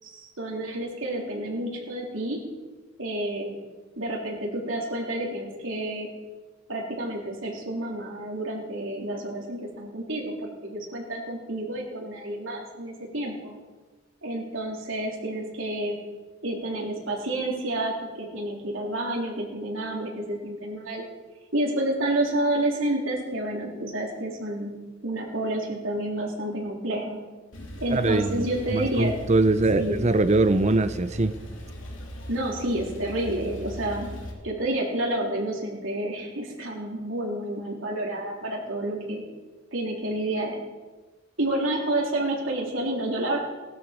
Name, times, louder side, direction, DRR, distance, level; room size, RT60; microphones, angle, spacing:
voice 1, 0.0-2.4 3.0-3.6 4.0-6.1 6.7-10.3 10.6-13.5 14.2-15.9 16.4-21.0 21.5-24.7 25.0-27.2 27.8-29.1 29.8-30.0 32.3-34.1 34.4-39.2 39.7-40.6 41.4-43.4, right 1 dB, 80° right, -2 dB, 3.7 m, -29 dB
Male speech man speaking / Car / Idling, 27.5-34.3, left 1 dB, 70° left, 3.2 m, -39 dB
voice 2, 27.9-28.5 28.7-31.3, right 2 dB, 35° right, 12 dB, 0.7 m, -22 dB
18.0 x 12.5 x 5.2 m, 1.3 s
head